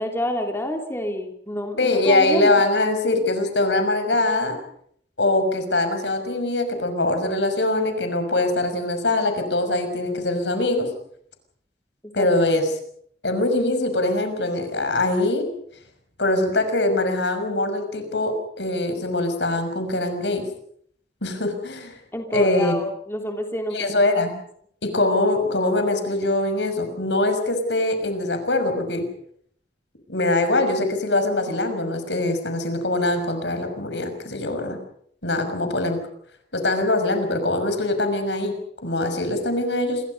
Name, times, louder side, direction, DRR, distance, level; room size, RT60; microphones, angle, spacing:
voice 1, 0.0-2.5 12.0-12.3 22.1-24.0, left 1 dB, 15° left, 3 dB, 3.1 m, -28 dB
voice 2, 1.8-4.6 5.2-10.9 12.1-12.7 13.2-15.5 16.2-20.5 21.2-21.9 22.3-22.8 23.7-24.3 24.8-29.1 30.1-34.8 35.2-36.0 36.5-40.0, left 2 dB, 85° left, 7 dB, 6.0 m, -23 dB
28.0 x 22.5 x 5.4 m, 0.64 s
head